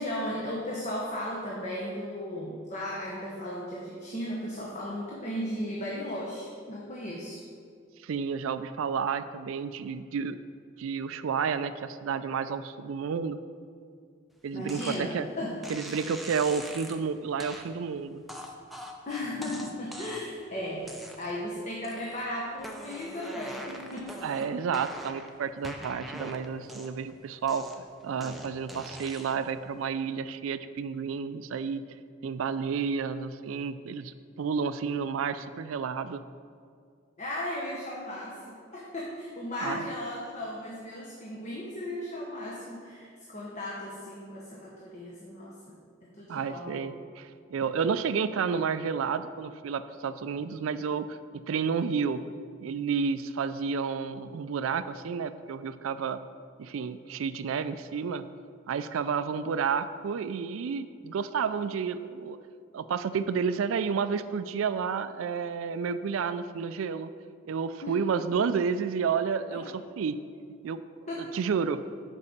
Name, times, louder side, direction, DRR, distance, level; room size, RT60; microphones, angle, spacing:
voice 1, 0.0-7.4 14.5-15.6 19.1-20.9 21.2-24.2 37.2-45.8 46.1-46.9 67.8-68.0 69.5-69.6 71.1-71.3, left 1 dB, 35° left, -4 dB, 1.0 m, -36 dB
voice 2, 8.0-10.4 10.8-13.4 14.4-15.3 15.7-18.2 24.2-31.8 32.2-36.2 39.6-39.9 46.3-52.2 52.6-56.2 56.6-58.2 58.7-62.4 62.7-67.1 67.5-70.2 70.6-70.8 71.2-71.8, right 6 dB, 85° right, 12 dB, 0.4 m, -31 dB
sound 1, 14.7-15.0 15.6-17.0 17.4-17.7 18.3-20.4 20.8-21.5 21.8-22.3 22.6-25.3 25.6-27.1 27.5-29.5, equal, ahead, 0.5 m, -43 dB
6.5 x 5.4 x 7.1 m, 2.2 s
head